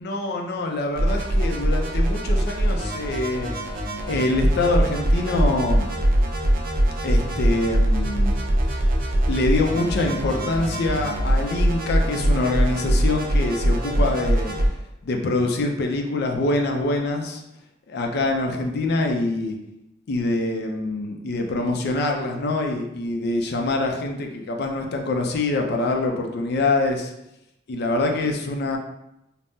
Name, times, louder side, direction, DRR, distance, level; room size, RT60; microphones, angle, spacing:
voice 1, 0.0-3.5 4.1-5.9 7.0-8.4 8.7-8.9 9.2-14.6 15.0-17.4 17.9-19.6 20.1-27.1 27.7-28.8, left 2 dB, 60° left, 3 dB, 0.4 m, -25 dB
sound 1, 1.0-14.7, right 1 dB, 50° right, 0.5 m, -22 dB
3.4 x 2.0 x 2.6 m, 0.87 s
head